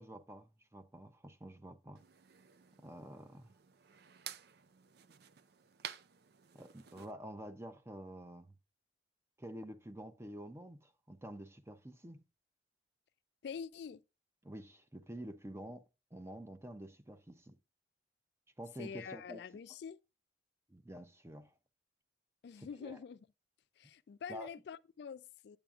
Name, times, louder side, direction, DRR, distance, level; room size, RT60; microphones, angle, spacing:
voice 1, 0.0-2.0 2.8-3.5 6.5-8.5 9.4-12.2 14.4-15.8 16.1-17.6 18.6-19.6 20.7-21.5 22.6-23.0 24.3-24.5, right 1 dB, 15° right, 0.6 m, -49 dB
sound 1, 2.0-7.1, right 9 dB, 55° right, 0.4 m, -52 dB
voice 2, 13.4-14.0 18.8-20.0 22.4-23.2 23.8-25.6, left 6 dB, 60° left, 0.3 m, -46 dB
8.8 x 7.9 x 2.4 m
head